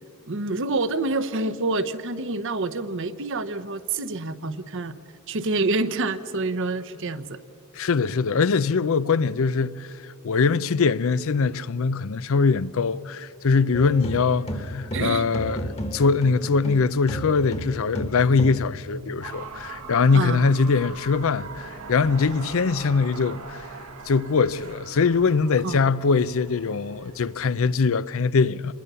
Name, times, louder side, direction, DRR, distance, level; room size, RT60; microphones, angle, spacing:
voice 1, 0.3-5.0 5.3-7.4 14.9-15.2 20.1-20.4 25.6-25.8, right 3 dB, 60° right, 0.9 m, -27 dB
voice 2, 7.7-9.9 10.2-23.6 24.1-28.7, left 4 dB, 65° left, 0.5 m, -22 dB
sound 1, 13.7-16.8 17.1-18.7, equal, 30° left, 1.6 m, -32 dB
sound 2, 19.2-27.8, right 4 dB, 80° right, 1.7 m, -41 dB
27.5 x 21.0 x 6.9 m
head